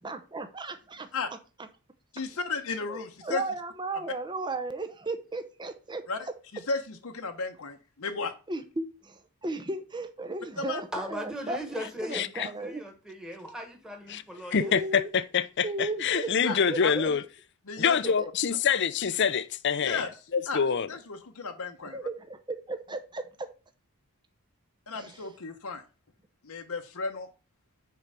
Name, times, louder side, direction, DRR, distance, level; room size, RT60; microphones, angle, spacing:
voice 1, 0.0-1.1 2.9-6.0 8.5-12.8 14.3-15.1 15.6-17.1 18.2-18.3 21.8-23.5 24.9-25.3, right 2 dB, 20° right, 0.7 m, -35 dB
voice 2, 2.1-3.4 6.1-6.3 6.5-8.3 10.6-10.8 16.5-17.2 17.7-18.0 19.8-20.1 20.5-20.6 20.9-22.0 24.9-25.8 26.4-27.3, left 4 dB, 75° left, 1.0 m, -34 dB
voice 3, 10.9-14.7, equal, 5° right, 1.5 m, -38 dB
voice 4, 12.1-12.5 14.1-14.2 14.5-17.2 17.8-20.0 20.3-20.9, left 6 dB, 50° left, 0.6 m, -26 dB
6.8 x 4.7 x 6.7 m
head